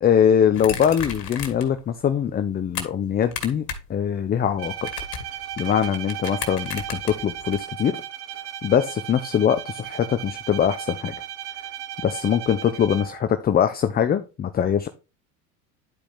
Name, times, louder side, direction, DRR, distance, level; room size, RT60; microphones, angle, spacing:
voice 1, 0.0-4.9 5.6-8.0 8.6-11.1 12.0-14.9, left 8 dB, 20° left, 8 dB, 0.6 m, -22 dB
sound 1, 0.5-1.8 2.1-2.8 3.2-3.9 4.2-7.6, left 7 dB, 80° left, 1.8 m, -34 dB
Bowed string instrument, 4.6-13.3, right 11 dB, 55° right, 1.1 m, -36 dB
10.5 x 4.9 x 3.4 m, 0.30 s
hypercardioid pair, 85°, 47 cm